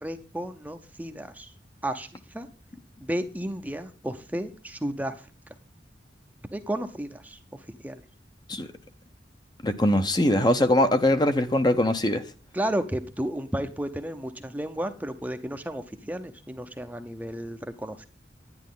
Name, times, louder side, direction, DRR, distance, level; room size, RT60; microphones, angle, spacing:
voice 1, 0.0-1.5 1.8-2.1 2.3-2.5 3.0-5.1 6.5-7.4 7.8-8.0 12.5-18.1, right 1 dB, 10° right, 0.7 m, -32 dB
voice 2, 9.6-12.2, left 1 dB, 25° left, 0.8 m, -22 dB
10.5 x 10.0 x 3.8 m
head